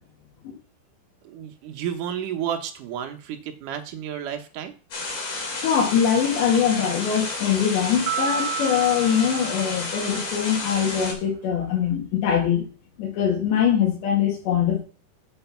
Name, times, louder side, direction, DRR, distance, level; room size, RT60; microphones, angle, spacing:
voice 1, 1.2-4.8, right 9 dB, 75° right, 5 dB, 2.0 m, -31 dB
sound 1, 4.9-11.1, left 3 dB, 50° left, 4.1 m, -31 dB
voice 2, 5.6-12.7 13.0-14.8, left 8 dB, 80° left, -2 dB, 4.3 m, -22 dB
sound 2, 8.1-10.6, right 8 dB, 90° right, 3.0 m, -32 dB
8.1 x 6.4 x 5.7 m, 0.37 s
omnidirectional pair, 5.0 m